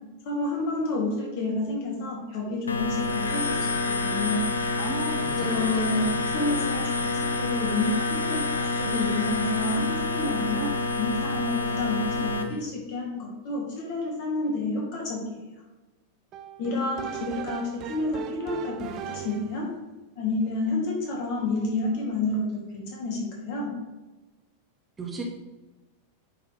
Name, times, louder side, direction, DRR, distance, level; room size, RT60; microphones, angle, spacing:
voice 1, 0.2-3.6 3.8-4.4 5.4-6.0 6.3-15.2 16.6-19.7 20.2-23.7, left 2 dB, 45° left, -2 dB, 2.9 m, -29 dB
sound 1, 2.7-12.4, left 3 dB, 75° left, 0.7 m, -28 dB
voice 2, 4.8-6.2 25.0-25.2, right 1 dB, 20° right, -1 dB, 1.7 m, -35 dB
sound 2, 16.3-19.7, right 9 dB, 35° right, 0.6 m, -38 dB
9.5 x 6.6 x 3.4 m, 1.1 s
figure-of-eight pair, 90°, 0 cm